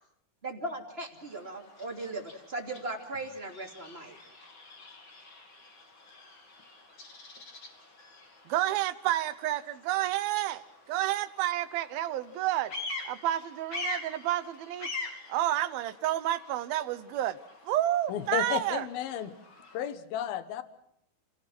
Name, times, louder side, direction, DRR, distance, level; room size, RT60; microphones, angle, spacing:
voice 1, 0.4-4.2, right 2 dB, 15° right, 2 dB, 2.3 m, -38 dB
Bird vocalization bird call bird song, 1.1-19.9, left 3 dB, 30° left, 3.1 m, -45 dB
voice 2, 8.5-10.6 10.9-12.7 13.0-14.9 15.3-17.4 17.7-18.9, right 13 dB, 70° right, 12 dB, 2.6 m, -30 dB
voice 3, 18.1-19.3 19.7-20.6, left 10 dB, 70° left, 11 dB, 3.0 m, -33 dB
29.0 x 17.5 x 6.1 m, 0.74 s
omnidirectional pair, 4.8 m